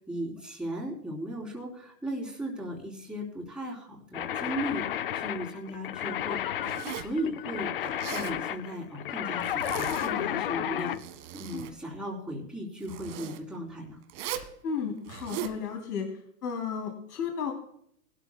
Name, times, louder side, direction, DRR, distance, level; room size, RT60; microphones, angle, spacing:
voice 1, 0.1-10.9 11.3-14.0, equal, ahead, -3 dB, 3.4 m, -37 dB
sound 1, 4.1-11.0, left 11 dB, 40° left, 0.4 m, -32 dB
Zipper (clothing), 6.6-7.2 7.8-8.4 9.4-10.3 10.7-11.7 12.8-13.4 14.1-14.5 15.0-15.6, right 11 dB, 40° right, 1.5 m, -39 dB
voice 2, 14.6-16.1 16.4-17.5, left 6 dB, 70° left, 3 dB, 3.1 m, -33 dB
20.0 x 12.5 x 2.2 m, 0.68 s
hypercardioid pair, 145°, 49 cm